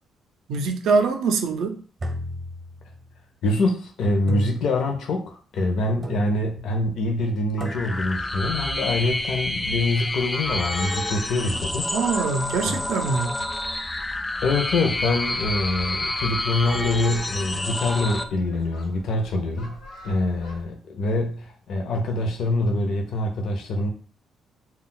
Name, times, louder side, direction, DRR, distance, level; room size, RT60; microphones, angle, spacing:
voice 1, 0.5-1.8 11.9-13.4, right 4 dB, 80° right, 0.4 m, -23 dB
sound 1, 2.0-3.2 4.3-5.1 6.0-6.6 7.6-8.3, equal, 40° right, 0.7 m, -35 dB
voice 2, 3.4-11.9 12.6-12.8 14.4-23.9, left 2 dB, 70° left, 0.5 m, -25 dB
sound 2, 7.6-18.2, left 1 dB, 20° left, 0.3 m, -29 dB
Fowl, 8.2-20.7, left 2 dB, 90° left, 0.9 m, -46 dB
2.2 x 2.0 x 3.6 m
cardioid pair, 90°, 0 cm